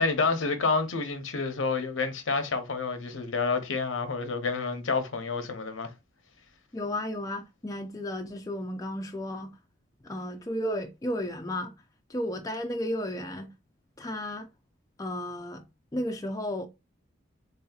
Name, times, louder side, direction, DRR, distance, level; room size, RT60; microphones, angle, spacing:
voice 1, 0.0-5.9, left 4 dB, 80° left, 0.8 m, -29 dB
voice 2, 6.7-9.5 10.0-11.7 12.1-13.5 14.0-14.5 15.0-15.6 15.9-16.7, left 1 dB, 15° left, 0.4 m, -33 dB
3.9 x 2.7 x 2.3 m
head